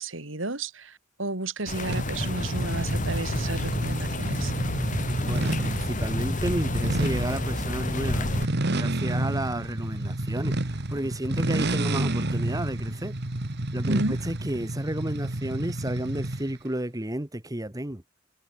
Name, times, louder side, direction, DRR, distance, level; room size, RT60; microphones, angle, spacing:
voice 1, 0.0-4.5 13.9-14.2, right 2 dB, 75° right, 3.3 m, -32 dB
sound 1, 1.7-8.5, left 1 dB, 40° left, 4.0 m, -30 dB
sound 2, 1.9-16.6, right 1 dB, 60° right, 1.8 m, -30 dB
voice 2, 5.2-13.1 13.7-18.0, right 1 dB, 20° right, 1.8 m, -32 dB
head